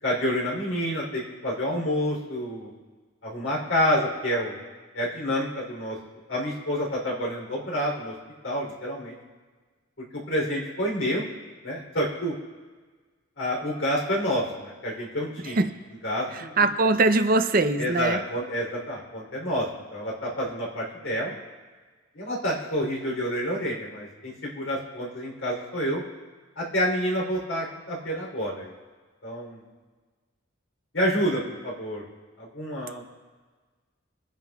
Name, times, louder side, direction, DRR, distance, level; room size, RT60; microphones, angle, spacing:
voice 1, 0.0-2.7 3.2-4.6 4.9-6.0 6.3-8.1 8.4-9.1 10.1-11.2 11.6-12.3 13.4-15.6 16.0-16.7 17.8-19.6 19.9-21.3 22.1-26.0 26.5-28.7 29.2-29.6 30.9-32.0 32.4-33.0, equal, 70° left, -3 dB, 3.4 m, -28 dB
voice 2, 16.6-18.2, right 3 dB, 45° right, 8 dB, 0.6 m, -21 dB
24.0 x 10.5 x 2.4 m, 1.4 s
head